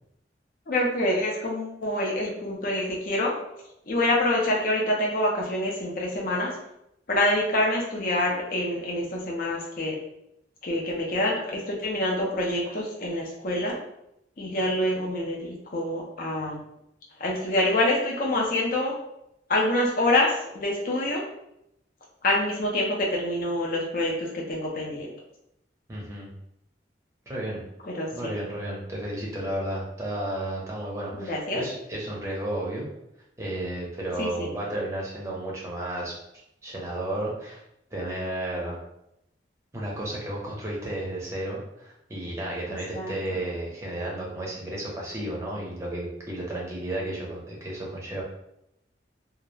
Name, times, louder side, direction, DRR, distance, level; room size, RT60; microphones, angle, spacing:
voice 1, 0.7-3.3 3.9-6.5 7.1-10.0 10.6-13.8 14.4-16.6 17.2-19.0 19.5-21.2 22.2-25.1 27.8-28.4 31.1-31.6 34.2-34.5 42.9-43.1, left 1 dB, 50° left, -2 dB, 0.5 m, -26 dB
voice 2, 25.9-26.3 27.3-27.6 28.1-32.9 33.4-36.1 36.6-37.6 37.9-38.8 39.7-48.2, right 1 dB, 15° right, -4 dB, 0.6 m, -33 dB
2.3 x 2.1 x 3.1 m, 0.81 s
head